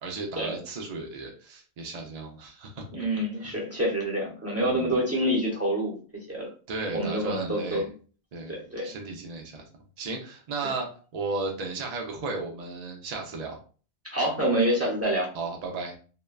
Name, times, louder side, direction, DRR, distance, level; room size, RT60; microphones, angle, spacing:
voice 1, 0.0-2.8 3.4-3.5 4.6-4.9 6.7-7.8 8.3-8.5 8.8-9.6 10.0-13.6 15.3-16.0, right 3 dB, 60° right, 2 dB, 0.4 m, -35 dB
voice 2, 2.9-6.5 6.9-7.9 8.5-8.9 10.6-10.7 14.1-15.3, right 1 dB, 15° right, -4 dB, 0.7 m, -27 dB
2.7 x 2.2 x 2.2 m, 0.39 s
omnidirectional pair, 1.1 m